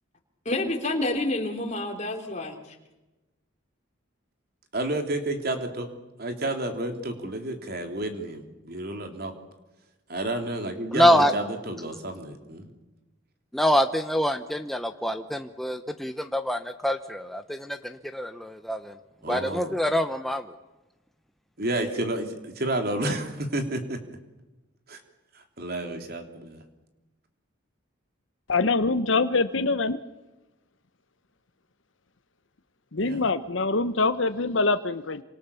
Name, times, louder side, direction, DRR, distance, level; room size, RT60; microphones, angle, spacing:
voice 1, 0.5-2.5, left 2 dB, 35° left, 2 dB, 3.5 m, -28 dB
voice 2, 4.7-5.9 6.2-9.3 10.1-12.7 19.2-19.7 21.6-24.0 24.9-25.0 25.6-26.6 33.0-33.2, right 1 dB, 50° right, 5 dB, 3.3 m, -30 dB
voice 3, 10.9-11.3 13.5-18.9 19.3-20.4, equal, ahead, 7 dB, 0.9 m, -25 dB
voice 4, 28.5-30.0 32.9-35.2, left 3 dB, 70° left, 10 dB, 1.0 m, -24 dB
27.0 x 25.5 x 7.2 m, 1.1 s
head